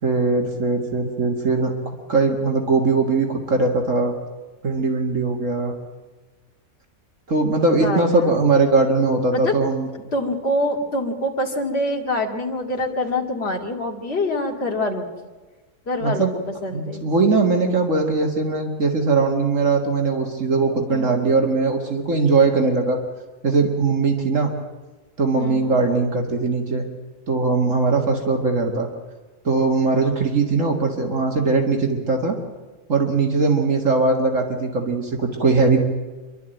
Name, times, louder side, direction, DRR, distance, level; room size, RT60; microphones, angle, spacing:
voice 1, 0.0-4.1 4.6-5.8 7.3-9.9 16.0-16.3 16.7-23.0 23.4-24.5 25.2-26.9 27.3-28.9 29.4-32.4 32.9-35.8, right 3 dB, 60° right, 2 dB, 2.3 m, -20 dB
voice 2, 7.7-8.4 9.3-9.6 10.1-15.0 15.9-16.3 16.6-17.0 20.9-21.3 25.3-25.8, left 1 dB, 45° left, -1 dB, 2.7 m, -25 dB
27.0 x 12.5 x 9.1 m, 1.3 s
omnidirectional pair, 1.5 m